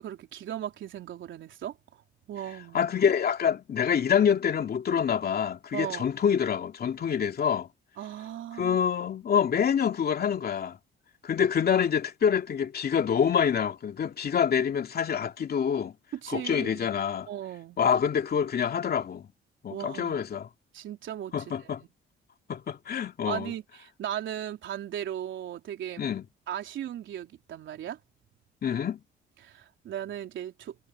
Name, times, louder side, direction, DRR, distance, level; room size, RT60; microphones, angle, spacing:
voice 1, 0.0-2.0 2.3-2.9 5.7-6.1 8.0-8.8 16.2-16.9 17.3-17.8 19.7-20.2 20.7-21.3 23.3-26.1 26.5-28.0 29.4-30.8, right 11 dB, 75° right, 3.7 m, -37 dB
voice 2, 2.7-7.7 8.6-10.8 11.2-15.9 16.3-17.3 17.8-19.3 19.6-20.5 21.3-21.8 22.5-23.5 26.0-26.2 28.6-29.0, left 7 dB, 50° left, 2.6 m, -26 dB
cardioid pair, 90°, 20 cm